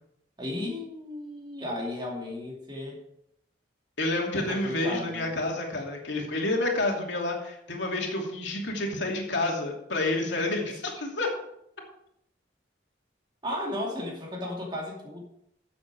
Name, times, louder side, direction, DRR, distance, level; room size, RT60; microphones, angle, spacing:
voice 1, 0.4-3.0 4.3-5.3 13.4-15.2, left 1 dB, 25° right, -1 dB, 2.6 m, -34 dB
voice 2, 4.0-11.3, left 2 dB, 75° left, 0 dB, 2.8 m, -29 dB
13.0 x 7.5 x 4.7 m, 0.76 s
head